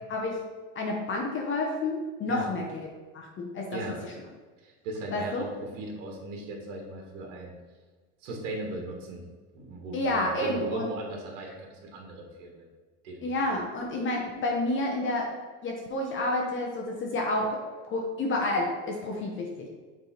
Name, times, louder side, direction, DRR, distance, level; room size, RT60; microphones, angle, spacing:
voice 1, 0.7-1.9 2.2-2.9 3.1-4.1 5.1-5.4 9.9-10.9 11.5-11.6 13.2-15.3 15.6-17.6 17.9-19.7, left 2 dB, 35° left, 0 dB, 0.9 m, -29 dB
voice 2, 4.6-5.5 5.7-7.6 8.2-9.2 9.5-12.7 13.0-13.5, right 2 dB, 85° right, 0 dB, 1.5 m, -37 dB
6.5 x 3.5 x 4.3 m, 1.3 s
supercardioid pair, 130°, 37 cm